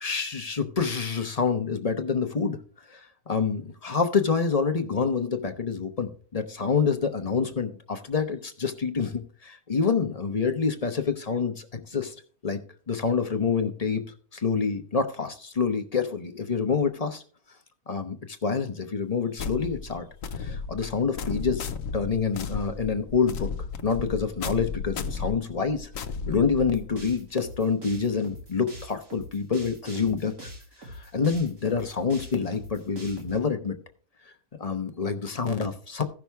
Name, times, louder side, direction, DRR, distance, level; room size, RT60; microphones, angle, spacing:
voice 1, 0.0-2.6 2.9-12.1 12.4-12.6 12.9-14.0 14.3-17.2 17.9-20.1 20.4-23.5 23.8-25.9 26.3-30.3 30.8-33.8 34.6-36.0, left 5 dB, 30° left, 7 dB, 0.8 m, -27 dB
sound 1, 19.4-27.0, left 5 dB, 65° left, 1.1 m, -34 dB
sound 2, 26.5-33.4, equal, 65° right, 2.7 m, -43 dB
15.5 x 6.0 x 3.5 m, 0.43 s
omnidirectional pair, 1.6 m